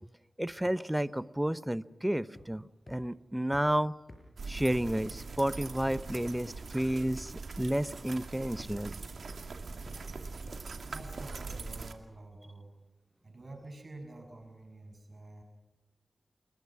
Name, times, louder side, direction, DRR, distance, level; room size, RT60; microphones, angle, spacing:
voice 1, 0.4-3.9 4.5-8.9, right 1 dB, 10° right, 15 dB, 0.7 m, -31 dB
sound 1, 2.4-2.6 2.9-3.0 3.5-3.6 4.1-4.2 4.7-4.8 5.3-5.4 5.9-6.1 6.5-6.6 7.0-7.1 7.6-7.7 8.2-8.3 8.7-8.8 9.3-9.4 9.9-10.1 10.5-10.6 11.0-11.1 11.5-11.6, left 1 dB, 30° left, 6.3 m, -50 dB
sound 2, 4.4-11.9, right 4 dB, 75° right, 2.3 m, -42 dB
voice 2, 10.9-12.7 13.2-15.4, right 2 dB, 45° right, 3 dB, 6.9 m, -48 dB
29.0 x 22.0 x 6.1 m, 1.0 s
wide cardioid pair, 80°, 0 cm